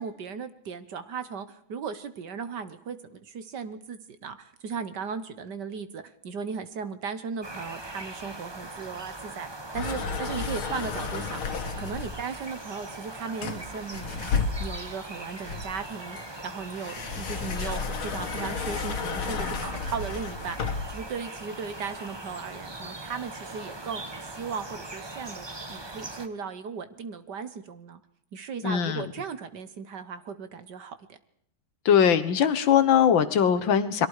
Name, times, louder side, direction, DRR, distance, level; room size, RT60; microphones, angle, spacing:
voice 1, 0.0-9.5 9.7-11.4 11.8-24.0 24.4-28.0 28.3-31.2, right 6 dB, 60° right, 12 dB, 1.8 m, -37 dB
sound 1, 7.4-26.3, right 2 dB, 15° right, 1.1 m, -41 dB
sound 2, 9.7-12.3 13.4-14.9 15.5-21.0, left 5 dB, 85° left, 2.5 m, -32 dB
voice 2, 28.6-29.1 31.9-34.1, left 8 dB, 70° left, 12 dB, 1.9 m, -21 dB
29.5 x 22.5 x 4.9 m, 0.66 s
omnidirectional pair, 2.2 m